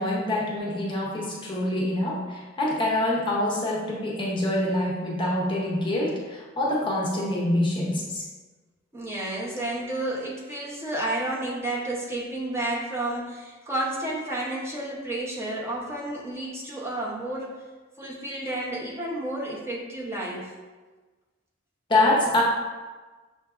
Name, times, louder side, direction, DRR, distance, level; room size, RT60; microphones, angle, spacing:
voice 1, 0.0-8.2 21.9-22.4, left 1 dB, 25° left, -4 dB, 0.7 m, -25 dB
voice 2, 8.9-17.6 18.0-20.5, right 1 dB, 15° right, -5 dB, 0.7 m, -31 dB
6.5 x 2.6 x 2.4 m, 1.3 s
head